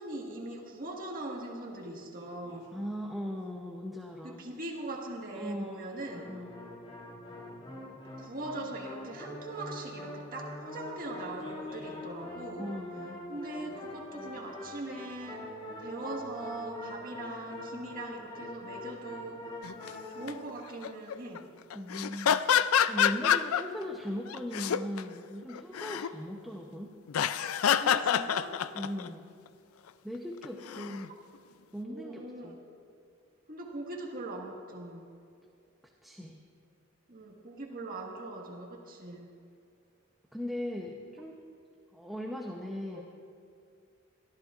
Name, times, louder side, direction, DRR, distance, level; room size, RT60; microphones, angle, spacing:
voice 1, 0.0-2.7 4.2-6.3 8.2-12.7 13.3-19.6 20.1-21.5 27.8-28.6 30.7-30.9 31.8-32.6 33.5-35.1 37.1-39.3, right 2 dB, 45° right, -1 dB, 1.7 m, -41 dB
sound 1, 2.1-3.3 6.0-20.3, left 1 dB, 30° left, 2.3 m, -43 dB
voice 2, 2.7-4.4 5.3-5.9 6.3-6.6 12.6-13.2 21.7-22.4 22.9-27.0 28.7-29.3 30.0-31.1 31.7-32.6 36.0-36.4 40.3-41.4 41.9-43.1, equal, ahead, 0 dB, 0.7 m, -39 dB
sound 2, 19.6-19.9 20.3-20.5 20.8-21.4 21.7-23.8 24.3-25.0 25.4-26.1 27.1-29.1 30.4-31.1, left 8 dB, 85° left, 0.4 m, -27 dB
23.5 x 13.5 x 2.5 m, 2.4 s
head